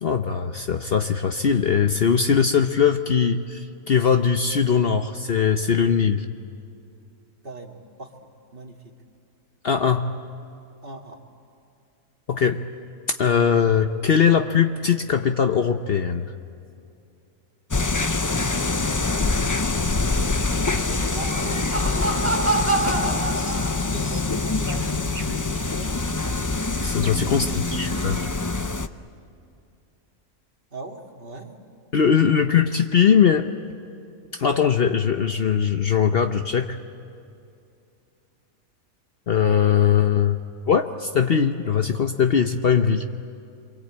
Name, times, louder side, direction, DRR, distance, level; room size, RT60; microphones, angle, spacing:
voice 1, 0.0-6.3 9.6-10.1 12.3-12.6 13.1-16.3 26.8-28.2 31.9-33.5 34.3-36.8 39.3-40.4 40.7-43.1, left 7 dB, 50° left, 7 dB, 0.9 m, -20 dB
voice 2, 7.4-8.1 8.5-8.9 10.8-11.2 19.1-20.1 20.7-22.7 23.8-26.2 27.1-27.7 30.7-31.6, right 2 dB, 40° right, 2 dB, 2.1 m, -40 dB
sound 1, 17.7-28.9, left 3 dB, 30° left, 0.3 m, -25 dB
Laughter, 21.0-24.2, right 2 dB, 10° right, 1.6 m, -26 dB
sound 2, 23.3-28.7, right 3 dB, 25° right, 1.4 m, -46 dB
27.5 x 23.5 x 8.6 m, 2.5 s
omnidirectional pair, 1.4 m